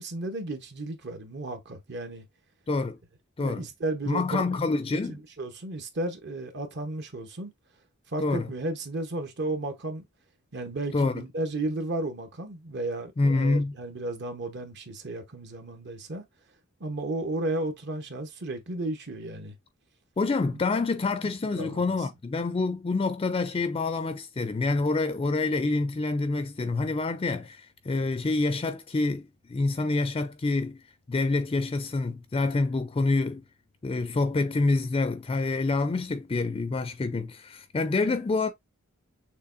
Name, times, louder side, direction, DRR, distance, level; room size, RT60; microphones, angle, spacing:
voice 1, 0.0-2.2 3.4-4.4 5.1-7.5 8.1-10.1 10.5-16.2 16.8-19.5 20.5-20.6 21.2-21.3 21.6-22.0, right 2 dB, 55° right, 1.0 m, -33 dB
voice 2, 2.7-3.0 3.4-3.7 4.1-5.2 8.2-8.5 10.9-11.2 13.2-13.7 20.2-30.8 31.1-33.4 33.8-38.5, left 3 dB, 25° left, 0.4 m, -27 dB
6.6 x 3.0 x 2.5 m
head